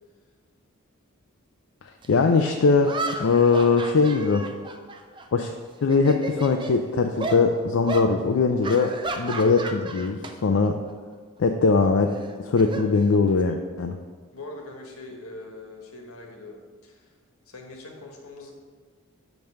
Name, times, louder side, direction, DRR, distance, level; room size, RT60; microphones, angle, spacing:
sound 1, 2.0-2.1 2.8-5.5 5.8-6.8 7.2-7.4 7.9-8.1 8.6-10.3 10.6-10.9 12.1-13.5, right 3 dB, 20° right, 0.5 m, -33 dB
voice 1, 2.1-4.4 5.3-5.6 5.8-8.9 9.2-10.7 11.4-12.1 12.5-13.9, left 4 dB, 70° left, 4 dB, 0.4 m, -21 dB
voice 2, 14.3-16.6 16.8-17.1 17.5-18.5, left 2 dB, 85° left, 1 dB, 1.4 m, -42 dB
5.9 x 5.4 x 6.4 m, 1.5 s
head